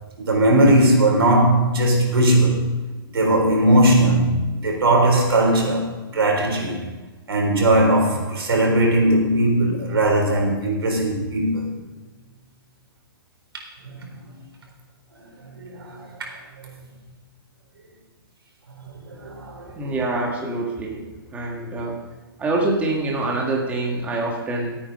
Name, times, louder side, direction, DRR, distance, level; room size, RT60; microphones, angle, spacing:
voice 1, 0.2-2.6 3.1-6.8 7.3-11.7 13.9-14.1 15.6-16.3 16.6-16.7 18.8-19.9, right 1 dB, 90° right, 0 dB, 4.0 m, -19 dB
voice 2, 19.7-21.0 21.3-22.0 22.4-24.8, right 2 dB, 10° right, -1 dB, 1.6 m, -25 dB
13.5 x 8.8 x 5.3 m, 1.2 s
hypercardioid pair, 155°, 12 cm